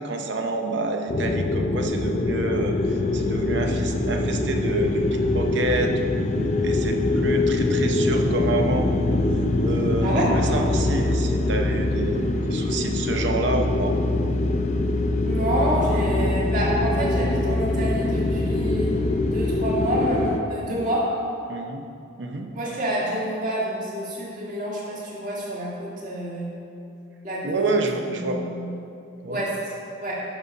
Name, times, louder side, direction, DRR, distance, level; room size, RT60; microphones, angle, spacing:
voice 1, 0.0-8.9 9.6-13.9 21.5-21.9 22.2-22.5 27.4-28.4 29.2-29.4, right 2 dB, 60° right, 4 dB, 0.7 m, -28 dB
sound 1, 1.1-20.4, left 2 dB, 35° left, 0.4 m, -23 dB
voice 2, 10.0-10.3 15.3-19.0 19.3-21.1 22.5-26.5 27.2-27.7 28.1-28.7 29.3-29.5 30.0-30.2, equal, 40° right, -6 dB, 1.9 m, -28 dB
11.0 x 4.0 x 5.3 m, 2.6 s
head